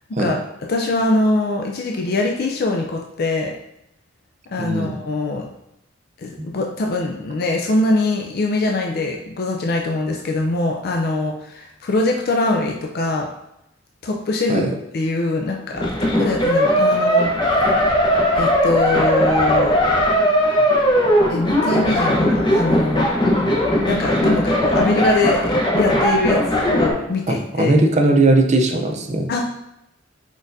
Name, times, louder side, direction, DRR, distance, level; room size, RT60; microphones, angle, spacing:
voice 1, 0.1-0.4 0.7-3.5 4.5-5.4 6.2-13.3 14.0-14.6 14.9-17.7 18.4-19.8 21.3-23.1 23.9-27.8 29.3-29.4, left 2 dB, 50° left, 1 dB, 0.4 m, -22 dB
voice 2, 4.6-5.0 14.5-14.7 27.3-29.3, right 2 dB, 35° right, 4 dB, 0.5 m, -18 dB
sound 1, 15.7-26.9, equal, 25° left, 0.8 m, -18 dB
4.6 x 4.2 x 2.6 m, 0.83 s
head